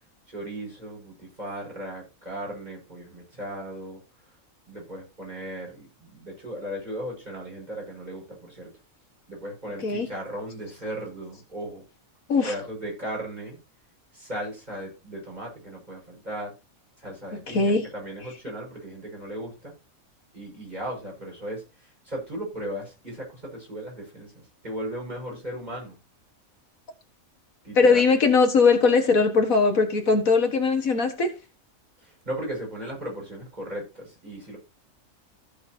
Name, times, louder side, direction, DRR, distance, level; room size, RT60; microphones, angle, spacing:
voice 1, 0.3-4.0 4.7-8.7 9.3-11.8 12.4-13.6 14.1-16.5 17.0-19.7 20.3-26.0 27.6-28.0 32.0-34.6, right 1 dB, 30° right, 6.2 m, -36 dB
voice 2, 17.5-17.8 27.8-31.3, left 4 dB, 70° left, 2.1 m, -20 dB
15.5 x 6.9 x 2.8 m
omnidirectional pair, 1.5 m